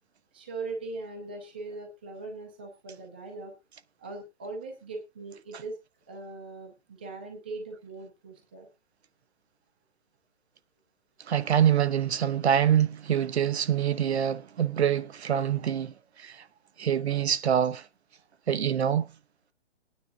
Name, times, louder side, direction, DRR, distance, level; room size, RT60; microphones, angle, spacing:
voice 1, 0.3-3.5 4.0-5.8 6.1-8.7, right 3 dB, 10° right, 0.6 m, -40 dB
voice 2, 11.3-16.4 16.8-17.9 18.5-19.1, right 9 dB, 70° right, 0.8 m, -25 dB
19.5 x 9.5 x 2.5 m
hypercardioid pair, 175°, 34 cm